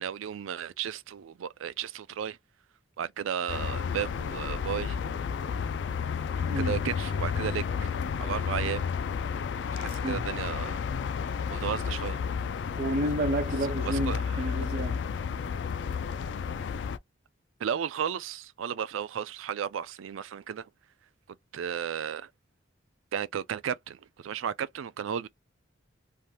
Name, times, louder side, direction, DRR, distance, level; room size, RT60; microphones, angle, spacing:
voice 1, 0.0-2.4 3.0-5.0 6.5-7.7 8.2-8.9 9.7-10.7 11.2-12.2 13.6-14.4 17.6-20.7 21.5-22.3 23.1-25.3, right 8 dB, 90° right, 0.4 m, -34 dB
sound 1, 3.5-17.0, left 6 dB, 60° left, 0.3 m, -31 dB
voice 2, 12.8-15.1, right 1 dB, 50° right, 0.6 m, -30 dB
3.2 x 2.6 x 2.2 m
head